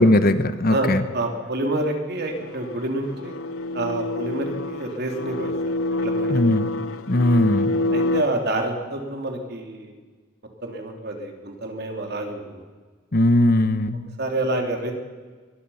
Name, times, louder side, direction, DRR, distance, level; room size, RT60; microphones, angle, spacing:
voice 1, 0.0-1.0 6.3-6.7 7.1-7.7 13.1-14.0, left 1 dB, 45° left, 11 dB, 1.1 m, -19 dB
voice 2, 0.7-3.4 3.7-6.6 7.9-9.9 10.6-12.6 14.2-14.9, right 2 dB, 50° right, 3 dB, 3.4 m, -28 dB
sound 1, 2.3-8.2, left 2 dB, 80° left, 0.9 m, -27 dB
23.0 x 20.0 x 5.8 m, 1.4 s
head